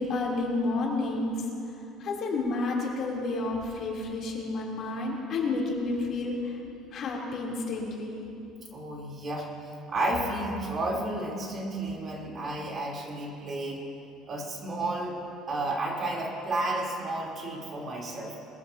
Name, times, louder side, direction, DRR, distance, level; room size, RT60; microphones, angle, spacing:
voice 1, 0.0-1.5 2.0-6.6 6.9-8.3, left 3 dB, 50° left, -3 dB, 3.3 m, -30 dB
voice 2, 8.7-9.5 9.9-13.8 14.3-15.1 15.5-18.4, right 2 dB, 40° right, -2 dB, 3.5 m, -32 dB
22.5 x 15.5 x 2.8 m, 2.7 s
cardioid pair, 110°, 0 cm